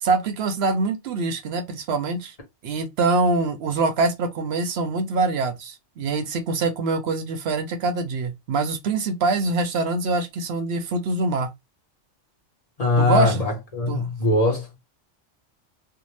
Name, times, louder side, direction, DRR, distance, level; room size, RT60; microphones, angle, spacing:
voice 1, 0.0-2.3 2.6-11.5 13.0-13.5 13.9-14.1, right 3 dB, 65° right, 0.8 m, -24 dB
voice 2, 12.8-14.7, left 2 dB, 35° left, 1.0 m, -21 dB
2.6 x 2.1 x 3.1 m
omnidirectional pair, 1.2 m